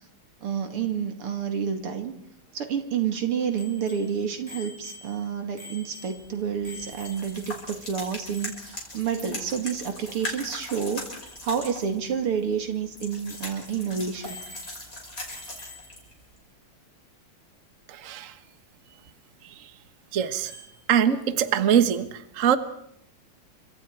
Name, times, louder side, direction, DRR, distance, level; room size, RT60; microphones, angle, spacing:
voice 1, 0.4-2.1 2.5-11.1 11.4-14.4, right 7 dB, 85° right, 6 dB, 3.1 m, -29 dB
Bicycle bell, 3.6-7.5 7.8-7.9 8.2-8.7 10.9-11.0 11.3-11.5 12.0-12.1 12.5-12.6 13.3-13.6 14.2-15.0 15.3-16.1 17.9-18.0 20.4-20.8, left 2 dB, 20° right, 5.7 m, -46 dB
sound 1, 6.1-16.4, left 2 dB, 40° left, 6.4 m, -40 dB
voice 2, 20.1-20.5 20.9-22.1 22.4-22.6, right 9 dB, 40° right, 10 dB, 1.4 m, -22 dB
29.5 x 25.5 x 4.6 m, 0.71 s
omnidirectional pair, 2.4 m